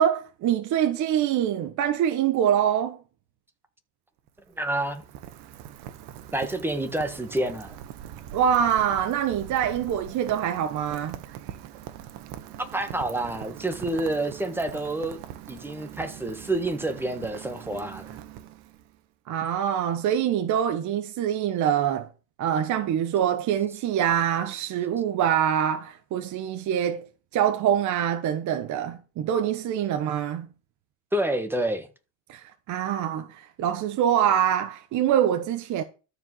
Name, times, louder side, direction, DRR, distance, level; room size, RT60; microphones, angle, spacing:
voice 1, 0.0-3.0 8.3-11.2 19.3-22.1 22.4-27.0 27.3-30.5 32.3-35.8, right 9 dB, 40° right, 1.1 m, -25 dB
Rain, 4.2-19.0, right 11 dB, 65° right, 1.5 m, -42 dB
voice 2, 4.6-5.0 6.3-7.8 12.6-15.2 15.5-18.2 31.1-31.9, right 1 dB, 5° right, 1.5 m, -28 dB
13.0 x 5.0 x 7.7 m
cardioid pair, 145°, 43 cm